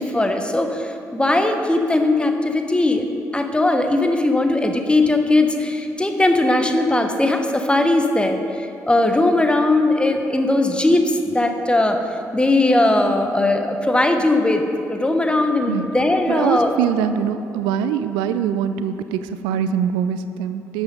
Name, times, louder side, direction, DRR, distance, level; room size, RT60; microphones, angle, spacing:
voice 1, 0.0-3.1 3.3-12.0 12.3-16.7, left 2 dB, 10° left, 5 dB, 1.2 m, -19 dB
voice 2, 16.3-20.8, right 8 dB, 70° right, 11 dB, 0.4 m, -23 dB
12.0 x 8.1 x 5.3 m, 2.6 s
figure-of-eight pair, 40°, 8 cm